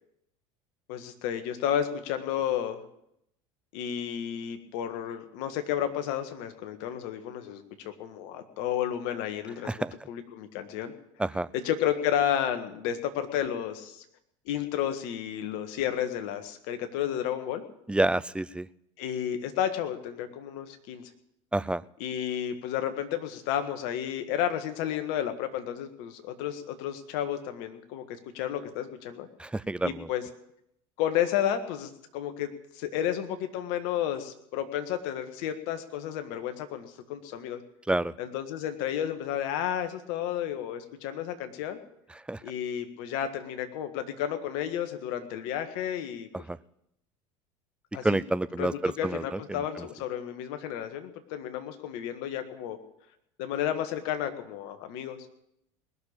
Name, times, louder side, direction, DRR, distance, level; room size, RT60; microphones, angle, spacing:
voice 1, 0.9-2.8 3.7-9.7 10.1-10.9 11.5-14.0 14.4-17.6 19.0-21.1 22.0-29.3 29.8-30.2 31.0-37.6 38.2-41.8 42.4-46.3 47.9-48.2 48.6-52.8 53.4-55.2, left 10 dB, 65° left, 8 dB, 1.7 m, -32 dB
voice 2, 17.9-18.7 21.5-21.8 29.4-30.1 37.9-38.1 42.3-42.4 46.5-46.6 48.0-49.9, right 2 dB, 5° right, 17 dB, 0.5 m, -28 dB
20.0 x 7.0 x 8.8 m, 0.78 s
hypercardioid pair, 75°, 17 cm